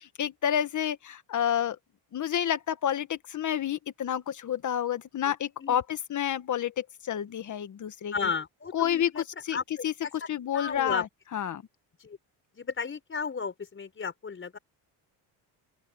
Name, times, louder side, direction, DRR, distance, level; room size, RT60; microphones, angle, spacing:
voice 1, 0.0-1.8 2.1-8.1 8.7-9.6 9.8-11.1 11.3-11.6, left 10 dB, 45° left, 1.6 m, -29 dB
voice 2, 8.1-9.2 9.5-10.3 10.5-11.0 12.0-12.2 12.5-14.6, left 5 dB, 30° left, 5.6 m, -34 dB
open air
cardioid pair, 120°, 42 cm